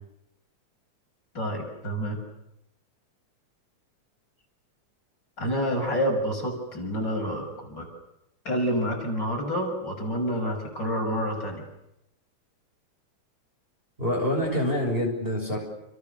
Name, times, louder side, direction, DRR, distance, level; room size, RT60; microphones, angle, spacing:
voice 1, 1.3-2.2 5.4-7.9 8.5-11.6, equal, 35° left, 1 dB, 7.2 m, -28 dB
voice 2, 14.0-15.6, left 1 dB, 15° right, 0 dB, 6.8 m, -26 dB
29.5 x 29.0 x 6.8 m, 0.84 s
omnidirectional pair, 3.3 m